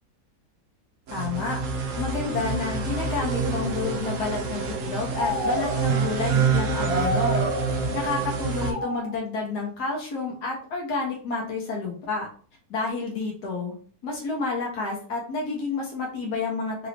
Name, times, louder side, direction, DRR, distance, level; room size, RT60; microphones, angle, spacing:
voice 1, 1.1-7.4 7.9-12.3 12.7-13.7 14.0-16.9, left 3 dB, 85° left, -2 dB, 1.7 m, -30 dB
sound 1, 1.1-8.7, right 4 dB, 60° right, 1.0 m, -27 dB
sound 2, 1.9-2.1 3.0-4.3 5.2-6.2 6.8-8.1 8.5-9.1, right 1 dB, 85° right, 1.7 m, -31 dB
4.7 x 2.5 x 3.3 m, 0.42 s
omnidirectional pair, 1.7 m